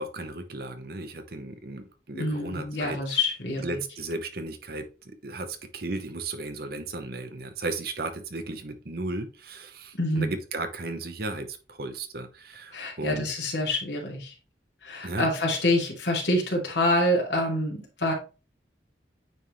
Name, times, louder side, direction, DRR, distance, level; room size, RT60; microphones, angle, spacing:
voice 1, 0.0-3.0 3.6-13.3 15.0-15.3, right 2 dB, 55° right, 8 dB, 0.9 m, -35 dB
voice 2, 2.1-3.8 9.9-10.3 12.7-14.3 14.8-18.1, left 1 dB, 75° left, -1 dB, 2.5 m, -26 dB
9.2 x 3.6 x 3.1 m, 0.32 s
head